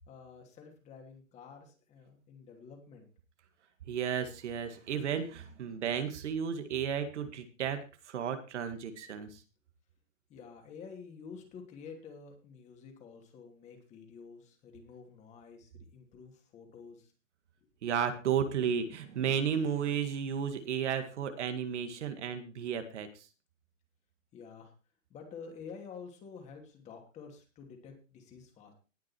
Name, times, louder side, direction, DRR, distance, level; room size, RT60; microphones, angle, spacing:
voice 1, 0.1-3.1 10.3-17.1 24.3-24.7 25.1-28.7, left 5 dB, 15° left, 3 dB, 2.9 m, -50 dB
voice 2, 3.9-9.4 17.8-23.1, right 8 dB, 60° right, 8 dB, 2.0 m, -33 dB
19.0 x 6.3 x 4.5 m, 0.34 s
hypercardioid pair, 160°, 38 cm